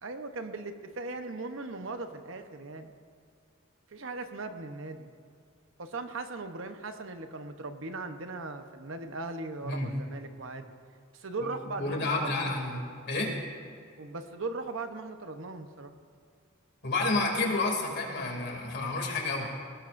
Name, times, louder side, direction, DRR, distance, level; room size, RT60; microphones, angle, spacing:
voice 1, 0.0-2.9 3.9-5.1 5.8-10.7 11.1-12.6 14.0-16.0, right 3 dB, 65° right, 7 dB, 0.9 m, -38 dB
voice 2, 11.8-13.3 16.8-19.5, left 2 dB, 55° left, 0 dB, 2.7 m, -30 dB
19.5 x 18.5 x 2.6 m, 2.2 s
head